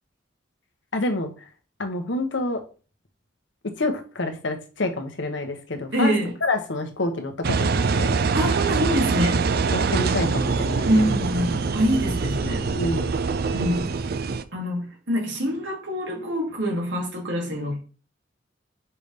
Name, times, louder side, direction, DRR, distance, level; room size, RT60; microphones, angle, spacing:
voice 1, 0.9-1.3 1.8-2.6 3.8-6.1 6.4-8.2 9.7-10.9 12.7-13.1, left 2 dB, 85° left, 1.2 m, -27 dB
voice 2, 5.9-6.3 8.3-9.5 10.9-12.7 13.5-13.9 14.5-17.8, equal, 75° right, 2.2 m, -25 dB
Engine, 7.4-14.4, right 4 dB, 55° right, 0.5 m, -24 dB
5.9 x 3.4 x 5.3 m
head